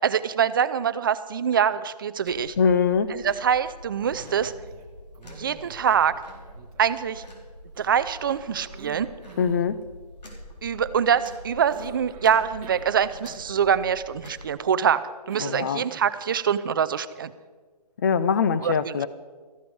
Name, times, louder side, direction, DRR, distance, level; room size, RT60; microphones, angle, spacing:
voice 1, 0.0-2.6 3.1-4.5 5.2-6.1 6.8-7.2 7.8-9.1 10.6-17.3 18.6-18.9, right 8 dB, 35° right, 0.5 m, -24 dB
sound 1, 2.2-14.5, equal, 85° left, 3.7 m, -45 dB
voice 2, 2.6-3.2 9.4-9.9 15.4-15.8 18.0-19.1, left 6 dB, 30° left, 0.5 m, -23 dB
Cough, 4.0-4.9 5.1-7.2 7.7-9.7 11.7-13.7 14.9-16.2, right 5 dB, 15° right, 1.3 m, -47 dB
14.0 x 13.0 x 4.7 m
hypercardioid pair, 155°, 21 cm